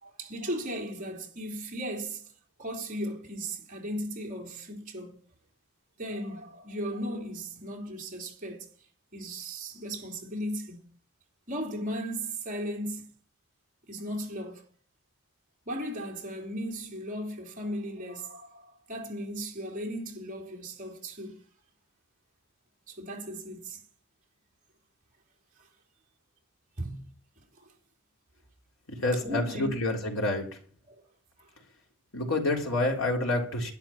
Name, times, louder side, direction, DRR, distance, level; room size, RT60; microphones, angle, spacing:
voice 1, 0.0-2.3 2.6-5.2 6.0-8.7 9.1-10.9 11.5-13.1 13.8-14.6 15.6-21.4 22.9-23.8 26.8-27.1 27.6-27.7 29.2-29.7 30.9-31.0, equal, 40° right, 3.5 m, -36 dB
voice 2, 28.9-30.5 32.1-33.7, left 2 dB, 75° left, 3.7 m, -28 dB
12.0 x 11.0 x 5.9 m
head